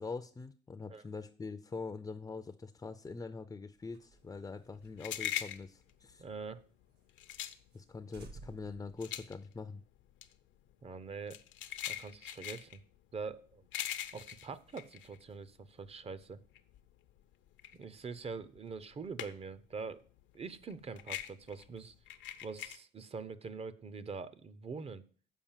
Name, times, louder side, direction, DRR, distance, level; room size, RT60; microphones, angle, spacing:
voice 1, 0.0-6.2 7.7-9.8, left 4 dB, 15° left, 9 dB, 0.5 m, -44 dB
sound 1, 3.8-6.6 7.0-7.1 7.4-7.5 7.7-9.8, right 3 dB, 60° right, 1.4 m, -56 dB
sound 2, 4.3-15.9 16.2-19.7 19.9-22.8, left 12 dB, 80° left, 0.7 m, -42 dB
voice 2, 6.2-6.6 10.8-11.4 11.9-12.8 13.1-13.6 14.1-16.4 17.7-20.0 20.3-21.9 22.4-25.0, right 4 dB, 30° right, 15 dB, 0.6 m, -44 dB
7.3 x 5.0 x 7.2 m, 0.44 s
cardioid pair, 115°, 19 cm